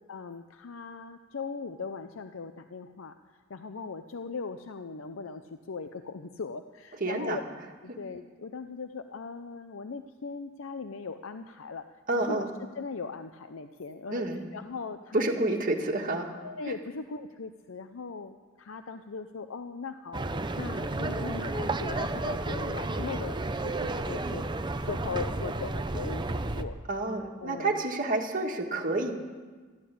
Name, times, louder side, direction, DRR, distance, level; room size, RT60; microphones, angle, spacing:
voice 1, 0.1-7.4 7.8-11.9 12.2-12.4 12.8-14.2 14.5-15.3 15.8-16.0 16.4-20.2 20.6-24.5 24.9-26.8 27.4-27.8, left 4 dB, 80° left, 9 dB, 0.6 m, -39 dB
voice 2, 7.0-7.4 12.1-12.5 14.1-14.4 15.1-16.3 26.9-29.1, right 2 dB, 45° right, 1 dB, 2.1 m, -29 dB
sound 1, 20.1-26.6, right 2 dB, 25° right, 0.7 m, -32 dB
13.5 x 12.0 x 8.5 m, 1.4 s
head